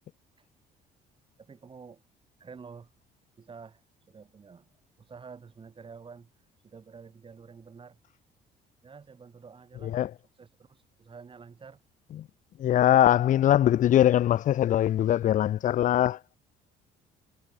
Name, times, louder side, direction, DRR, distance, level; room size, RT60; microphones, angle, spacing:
voice 1, 1.4-2.0 2.4-2.9 3.4-4.7 5.0-6.3 6.6-8.0 8.8-10.0 10.4-11.8, right 5 dB, 30° right, 7.3 m, -49 dB
voice 2, 12.6-16.2, left 12 dB, 50° left, 0.6 m, -22 dB
cardioid pair, 110°, 17 cm